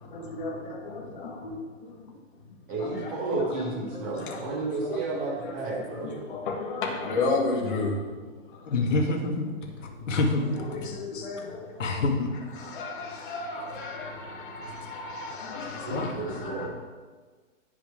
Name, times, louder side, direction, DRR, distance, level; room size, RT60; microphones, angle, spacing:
voice 1, 0.0-1.5 2.8-3.6 4.2-4.5 4.8-5.0 5.4-5.6 6.0-8.8 9.9-12.0 12.6-16.7, left 3 dB, 40° left, 2.0 m, -34 dB
voice 2, 0.9-1.6 1.9-2.1 8.7-9.5 10.1-10.6 11.8-12.3 15.4-16.1, left 3 dB, 70° left, 2.1 m, -28 dB
voice 3, 2.7-6.2 15.9-16.7, right 3 dB, 10° right, 0.6 m, -31 dB
17.0 x 6.0 x 3.6 m
hypercardioid pair, 180°, 39 cm